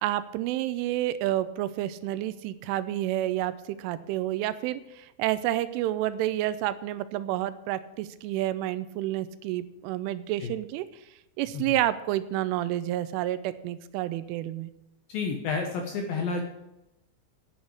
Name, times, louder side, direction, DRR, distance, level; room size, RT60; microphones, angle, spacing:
voice 1, 0.0-3.5 3.8-10.9 11.4-14.7, right 14 dB, 85° right, 14 dB, 3.1 m, -29 dB
voice 2, 15.1-16.4, left 4 dB, 70° left, 3 dB, 2.2 m, -30 dB
8.8 x 8.4 x 8.6 m, 0.90 s
omnidirectional pair, 5.6 m